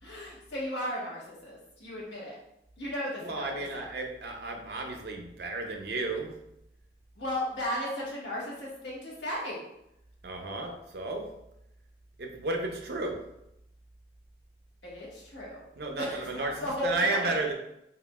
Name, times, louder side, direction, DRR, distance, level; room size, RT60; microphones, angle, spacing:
voice 1, 0.0-2.3 2.8-3.9 7.2-9.6 14.8-15.6 16.0-17.3, left 1 dB, 85° left, -5 dB, 1.3 m, -35 dB
voice 2, 3.2-6.3 10.2-11.2 12.2-13.2 15.8-17.5, right 2 dB, 65° right, 2 dB, 0.6 m, -33 dB
4.8 x 2.5 x 2.3 m, 0.82 s
head